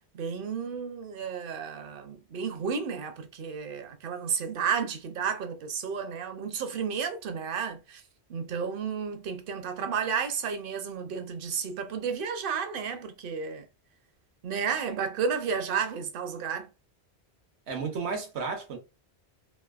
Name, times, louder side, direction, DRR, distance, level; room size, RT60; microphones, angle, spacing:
voice 1, 0.1-8.0 8.3-13.6 14.4-16.7, right 6 dB, 60° right, 0.7 m, -32 dB
voice 2, 17.7-18.8, right 5 dB, 80° right, 1.1 m, -32 dB
3.3 x 2.6 x 2.3 m
omnidirectional pair, 1.1 m